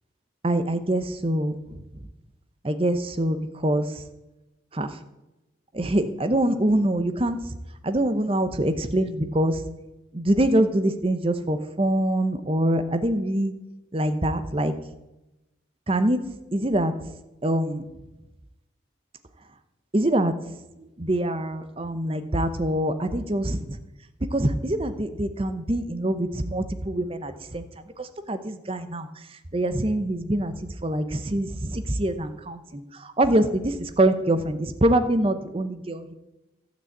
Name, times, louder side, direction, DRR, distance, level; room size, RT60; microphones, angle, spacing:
voice 1, 0.4-1.8 2.6-4.0 4.7-4.9 5.7-7.4 7.8-9.6 10.1-13.5 13.9-14.7 15.9-16.2 16.5-16.9 17.4-17.8 19.9-20.3 20.8-23.6 24.3-27.7 28.0-29.1 29.5-30.5 30.8-36.1, right 1 dB, 30° right, 10 dB, 0.8 m, -24 dB
12.5 x 6.2 x 8.5 m, 0.99 s
head